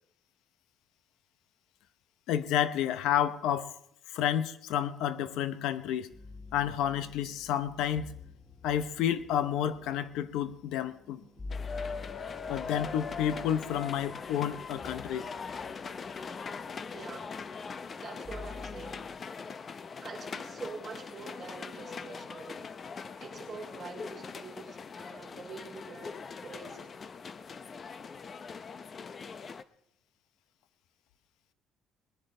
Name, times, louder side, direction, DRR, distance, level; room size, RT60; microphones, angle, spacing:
voice 1, 2.3-3.7 4.1-6.1 6.5-8.1 8.6-11.2 12.5-15.3, left 10 dB, 85° left, 13 dB, 0.8 m, -30 dB
sound 1, 6.1-19.2, left 4 dB, 10° left, 2.0 m, -48 dB
sound 2, 11.5-29.6, left 5 dB, 35° left, 0.6 m, -41 dB
voice 2, 16.9-17.4 17.9-19.0 20.0-22.7 23.2-26.9, right 4 dB, 35° right, -1 dB, 3.4 m, -45 dB
20.5 x 11.0 x 3.8 m, 0.71 s
cardioid pair, 120°, 0 cm